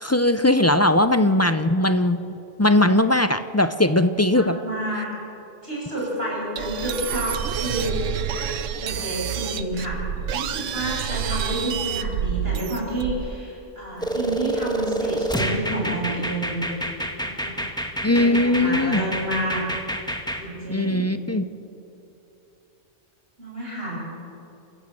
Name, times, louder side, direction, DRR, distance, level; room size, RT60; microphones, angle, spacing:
voice 1, 0.0-4.6 18.0-19.0 20.7-21.4, left 1 dB, 20° left, 10 dB, 0.4 m, -19 dB
voice 2, 4.3-5.1 5.6-8.0 8.8-10.0 10.3-16.7 17.2-17.6 18.1-19.7 20.4-21.1 23.4-24.0, right 1 dB, 50° right, -4 dB, 7.7 m, -29 dB
Robotic Repair, 6.6-13.4, right 8 dB, 85° right, 1.1 m, -28 dB
sound 1, 14.0-20.4, right 1 dB, 5° left, 1.5 m, -28 dB
27.5 x 15.5 x 7.8 m, 2.9 s
omnidirectional pair, 1.3 m